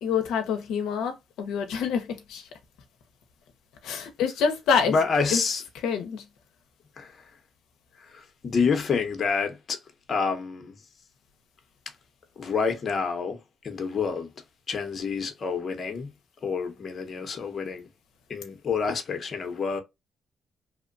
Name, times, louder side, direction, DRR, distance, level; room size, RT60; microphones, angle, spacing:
voice 1, 0.0-2.5 3.8-5.0 5.3-5.4 5.8-6.2, left 6 dB, 85° left, 0.5 m, -26 dB
voice 2, 4.9-5.6 7.0-7.1 8.1-9.8 10.1-10.7 12.4-13.4 13.6-14.3 14.7-16.1 16.4-17.9 18.3-19.8, left 5 dB, 45° left, 0.7 m, -28 dB
2.8 x 2.1 x 2.4 m
cardioid pair, 90°, 0 cm